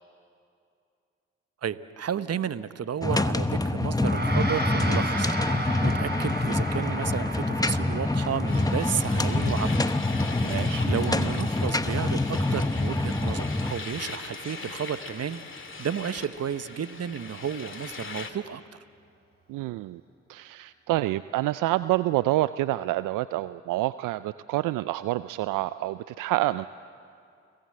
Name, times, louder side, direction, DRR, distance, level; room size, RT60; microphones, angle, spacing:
voice 1, 1.6-9.8 10.4-18.6, right 8 dB, 50° right, 14 dB, 1.0 m, -32 dB
sound 1, 3.0-13.7, left 2 dB, 10° left, 1.0 m, -26 dB
Gong, 3.9-13.5, right 2 dB, 30° right, 4.2 m, -36 dB
sound 2, 8.5-18.3, left 4 dB, 40° left, 2.4 m, -40 dB
voice 2, 10.4-10.8 19.5-20.0 20.3-26.7, right 16 dB, 75° right, 15 dB, 0.5 m, -27 dB
30.0 x 18.0 x 7.7 m, 2.4 s
hypercardioid pair, 45°, 32 cm